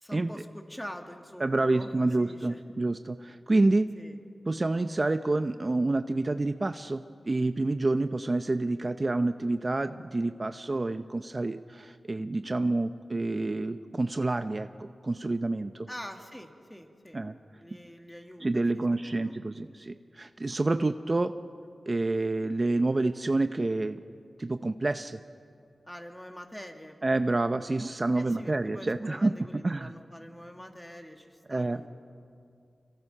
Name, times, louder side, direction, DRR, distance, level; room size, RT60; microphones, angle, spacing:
voice 1, 0.0-2.6 4.0-4.2 15.9-17.2 17.6-19.4 25.9-27.0 28.1-31.9, equal, 10° left, 4 dB, 2.5 m, -45 dB
voice 2, 1.4-3.9 4.5-15.9 17.1-17.3 18.4-21.4 21.9-24.0 24.4-25.2 27.0-29.3 29.6-29.9 31.5-31.8, right 2 dB, 40° right, 9 dB, 0.7 m, -28 dB
26.0 x 24.0 x 5.6 m, 2.4 s
cardioid pair, 45°, 0 cm